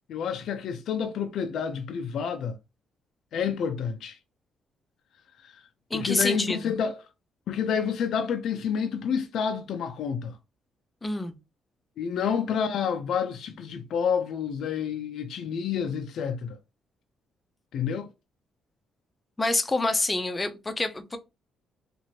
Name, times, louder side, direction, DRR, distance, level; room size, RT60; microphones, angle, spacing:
voice 1, 0.1-2.6 3.3-4.2 5.4-5.6 5.9-7.0 7.5-10.4 12.0-16.6 17.7-18.1, left 7 dB, 75° left, 0.4 m, -29 dB
voice 2, 5.9-6.7 11.0-11.4 19.4-21.2, left 2 dB, 20° left, 0.5 m, -27 dB
2.9 x 2.5 x 2.8 m
cardioid pair, 90°, 0 cm